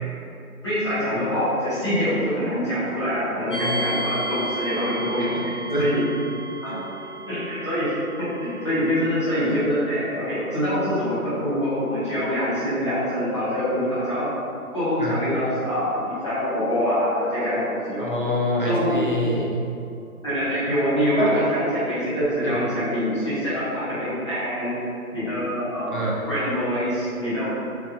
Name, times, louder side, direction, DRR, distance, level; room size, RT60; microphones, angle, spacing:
voice 1, 0.6-6.0 6.7-6.8 7.3-7.9 8.4-14.3 14.7-18.0 18.6-18.9 20.2-24.7 25.1-26.0 26.3-27.5, equal, 20° left, -14 dB, 1.1 m, -25 dB
sound 1, 3.5-18.3, right 1 dB, 55° left, 0.9 m, -37 dB
voice 2, 18.0-19.6 21.2-21.3 22.4-22.5 25.9-26.2, equal, 35° left, -5 dB, 0.5 m, -25 dB
7.1 x 2.6 x 2.5 m, 2.6 s
hypercardioid pair, 175°, 45 cm